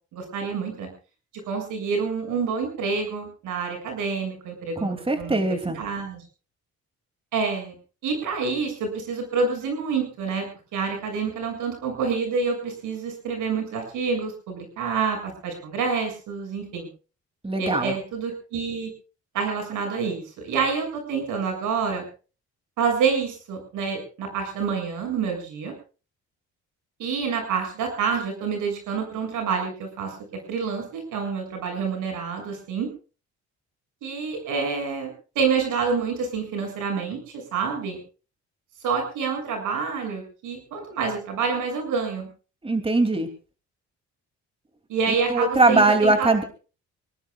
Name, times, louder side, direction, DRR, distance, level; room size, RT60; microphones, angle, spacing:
voice 1, 0.1-0.9 1.5-6.2 7.3-7.7 8.0-10.5 10.7-16.9 17.6-18.9 19.3-22.0 22.8-25.7 27.0-30.1 30.5-32.9 34.0-37.2 37.5-38.0 38.8-42.3 44.9-46.5, right 5 dB, 85° right, 4 dB, 7.3 m, -27 dB
voice 2, 4.8-5.8 17.4-17.9 42.6-43.3 45.3-46.4, right 2 dB, 20° right, 7 dB, 2.8 m, -21 dB
25.0 x 19.0 x 2.4 m, 0.36 s
cardioid pair, 90°, 30 cm